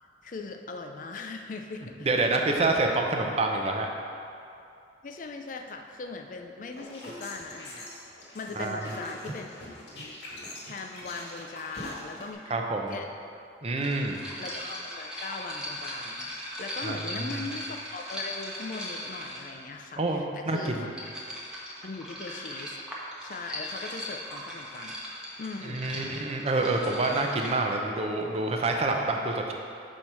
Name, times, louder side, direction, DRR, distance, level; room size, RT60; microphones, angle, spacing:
voice 1, 0.2-2.1 2.5-2.7 5.0-7.9 8.3-9.6 9.9-10.2 10.6-13.1 14.0-14.1 14.4-16.3 16.6-20.9 21.8-22.8 23.2-25.0 25.4-25.9, left 3 dB, 45° left, 5 dB, 0.5 m, -40 dB
voice 2, 2.0-3.9 8.6-8.8 12.5-12.9 13.6-14.2 16.8-17.0 20.0-20.8 25.7-29.5, right 2 dB, 35° right, 2 dB, 0.6 m, -27 dB
sound 1, 6.6-12.3, left 1 dB, 70° left, 1.6 m, -42 dB
sound 2, 12.9-13.0 13.8-19.6 20.6-27.5, equal, 5° right, 1.0 m, -39 dB
6.2 x 4.5 x 5.5 m, 2.5 s
head